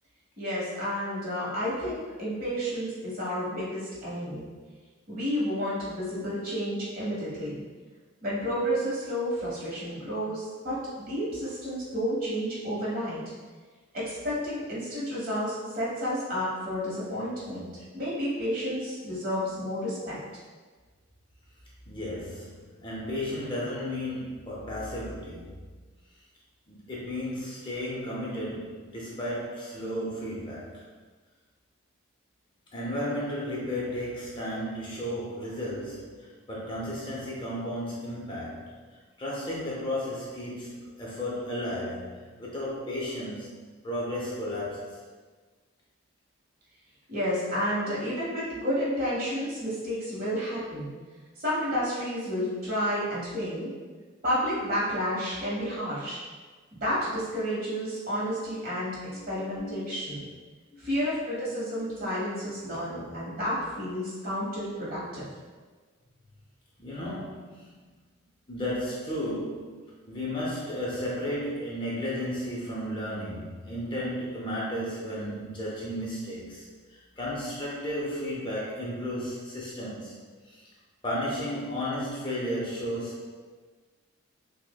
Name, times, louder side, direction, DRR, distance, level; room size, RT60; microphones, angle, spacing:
voice 1, 0.4-4.5 5.1-7.6 8.2-13.2 13.9-17.7 17.9-20.2 47.1-50.9 51.4-53.7 54.2-56.2 56.8-59.0 59.3-60.2 60.8-65.2, equal, 45° right, -7 dB, 1.1 m, -31 dB
voice 2, 21.9-25.6 26.7-30.8 32.7-38.8 39.2-43.5 43.8-45.0 59.1-59.9 60.7-60.9 66.8-67.7 68.5-80.2 80.5-80.6 81.0-83.3, equal, 25° left, -5 dB, 0.5 m, -34 dB
5.9 x 2.1 x 2.2 m, 1.4 s
head